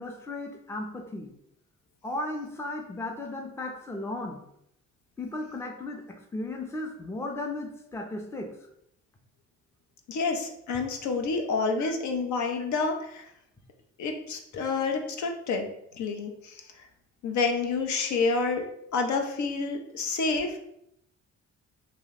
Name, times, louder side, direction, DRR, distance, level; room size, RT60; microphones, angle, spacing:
voice 1, 0.0-1.3 2.0-4.4 5.2-8.5 11.8-11.9, left 2 dB, 10° left, 2 dB, 0.4 m, -35 dB
voice 2, 10.1-13.3 14.0-15.7 15.9-16.5 17.2-18.6 18.9-20.6, left 4 dB, 70° left, 3 dB, 0.6 m, -28 dB
2.8 x 2.1 x 3.9 m, 0.75 s
cardioid pair, 90°, 30 cm